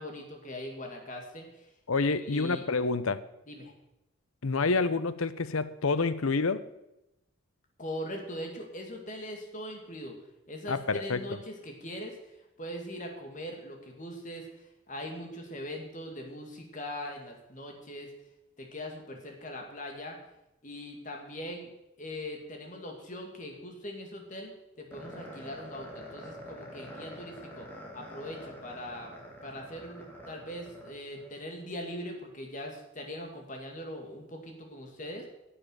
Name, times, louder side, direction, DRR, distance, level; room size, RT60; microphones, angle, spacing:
voice 1, 0.0-1.7 2.2-2.6 3.5-3.7 7.8-10.2 10.5-18.1 18.6-20.2 20.6-21.7 22.0-29.2 29.4-35.3, left 1 dB, 35° left, 2.4 m, -41 dB
voice 2, 1.9-3.2 4.4-6.6 10.7-11.2, left 3 dB, 85° left, 0.8 m, -28 dB
sound 1, 24.9-31.3, equal, 10° left, 2.6 m, -46 dB
11.0 x 7.6 x 9.2 m
head